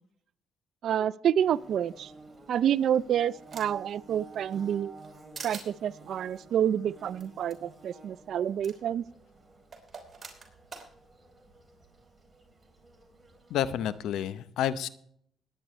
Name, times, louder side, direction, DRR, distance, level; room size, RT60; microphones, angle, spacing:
voice 1, 0.8-2.1 2.5-5.0 5.4-9.0, right 9 dB, 70° right, 18 dB, 0.4 m, -28 dB
Bird / Buzz, 1.4-14.0, right 2 dB, 20° right, 3.4 m, -53 dB
sound 1, 2.5-3.9 4.3-5.1 5.3-5.7 7.2-7.3 7.5-7.6 8.6-8.7 9.7-10.9, right 5 dB, 40° right, 3.1 m, -44 dB
voice 2, 13.5-14.9, left 10 dB, 85° left, 15 dB, 0.7 m, -29 dB
20.5 x 9.3 x 3.2 m, 0.68 s
cardioid pair, 90°, 0 cm